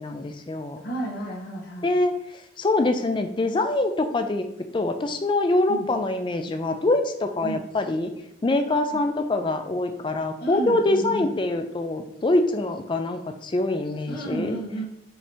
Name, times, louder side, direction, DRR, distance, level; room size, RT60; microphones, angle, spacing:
voice 1, 0.0-0.8 1.8-4.5 4.7-8.1 8.4-14.6, left 2 dB, 25° left, 6 dB, 0.3 m, -24 dB
voice 2, 0.8-2.0 5.7-5.9 7.4-7.6 10.4-11.3 14.1-14.8, right 2 dB, 50° left, -1 dB, 0.9 m, -32 dB
5.4 x 2.8 x 3.4 m, 0.81 s
head